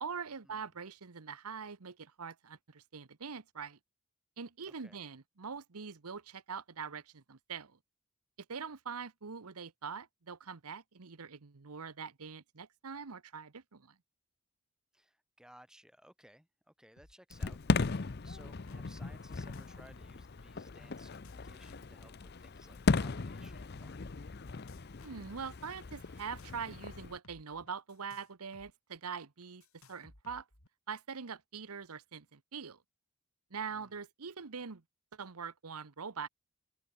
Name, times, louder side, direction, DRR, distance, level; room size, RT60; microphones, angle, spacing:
voice 1, 0.0-3.8 4.4-7.8 8.5-13.9 25.0-29.6 29.9-30.5 30.9-32.8 33.5-34.8 35.1-36.3, right 6 dB, 85° right, 1.0 m, -43 dB
voice 2, 4.7-5.0 14.9-24.1 33.7-34.0, equal, 5° right, 5.6 m, -60 dB
sound 1, 17.0-17.1 17.4-18.0 18.2-18.8 19.3-20.7 21.0-22.0 22.7-24.0 24.5-25.5 26.2-28.7 29.0-29.1 29.6-30.7, left 2 dB, 70° left, 7.7 m, -60 dB
Fireworks, 17.3-27.2, left 3 dB, 45° left, 0.6 m, -37 dB
open air
head